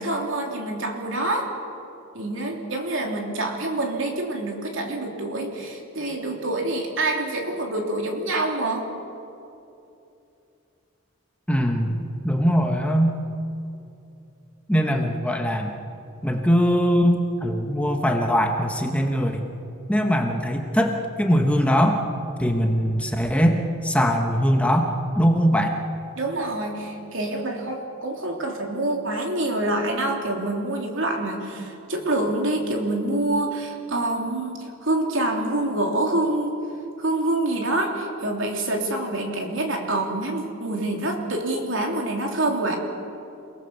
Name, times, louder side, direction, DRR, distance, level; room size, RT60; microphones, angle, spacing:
voice 1, 0.0-1.6 2.1-8.9 26.2-36.6 37.0-42.8, right 2 dB, 60° right, 1 dB, 3.2 m, -26 dB
voice 2, 11.5-13.2 14.7-15.7 16.2-19.5 19.9-22.1 22.4-25.8, equal, 5° left, 3 dB, 1.2 m, -21 dB
28.5 x 18.0 x 7.2 m, 2.8 s
head